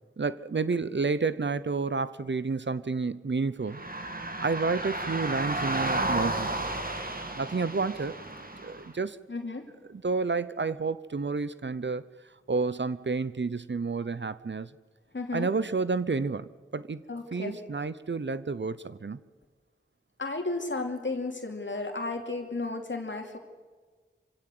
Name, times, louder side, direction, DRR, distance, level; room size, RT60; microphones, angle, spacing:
voice 1, 0.2-3.8 4.4-6.5 7.0-8.1 8.6-9.2 9.9-12.0 12.5-14.7 15.3-17.0 17.3-19.2, right 4 dB, 65° right, 15 dB, 0.8 m, -30 dB
sound 1, 3.7-8.9, right 2 dB, 45° right, 2.8 m, -32 dB
voice 2, 9.3-9.6 15.1-15.5 17.1-17.6 20.2-23.4, left 3 dB, 65° left, 3 dB, 2.8 m, -33 dB
26.0 x 17.0 x 7.9 m, 1.4 s
wide cardioid pair, 60°, 20 cm